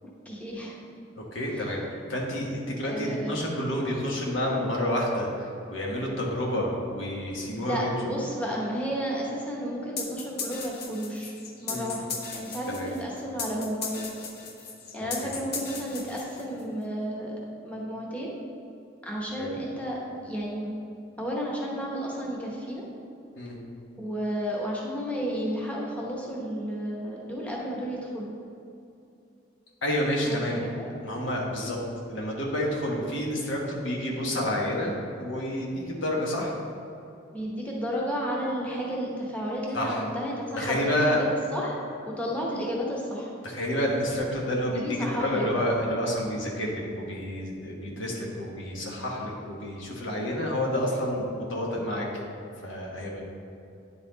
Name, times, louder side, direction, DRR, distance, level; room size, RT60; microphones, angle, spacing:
voice 1, 0.2-0.7 1.5-1.6 2.8-3.4 7.6-11.3 11.6-14.0 14.9-17.3 17.6-18.3 19.0-20.7 21.2-22.8 24.0-28.3 30.3-30.9 37.3-41.2 41.5-41.8 42.1-43.3 44.7-45.6, equal, 10° left, -4 dB, 1.0 m, -32 dB
voice 2, 1.1-8.1 11.7-11.9 12.7-12.9 15.0-15.3 19.4-19.6 23.3-23.6 29.8-30.6 31.0-31.8 32.1-36.5 39.7-40.0 40.6-41.2 43.4-52.1 52.6-53.2, left 1 dB, 80° left, -2 dB, 1.3 m, -29 dB
sound 1, 10.0-16.7, left 5 dB, 50° left, 0.9 m, -37 dB
9.8 x 4.2 x 3.9 m, 2.7 s
head